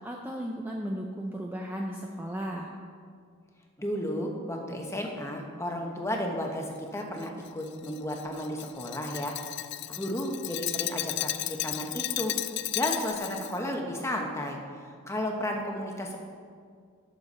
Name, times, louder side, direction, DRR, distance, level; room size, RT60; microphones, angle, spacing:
voice 1, 0.0-2.7, equal, 10° right, -1 dB, 0.5 m, -35 dB
voice 2, 3.8-9.3 9.9-12.3 12.7-14.6 14.8-16.2, left 1 dB, 15° left, 1 dB, 1.0 m, -33 dB
Glass, 7.2-13.6, left 14 dB, 50° left, 0.3 m, -34 dB
12.0 x 6.7 x 4.2 m, 2.1 s
head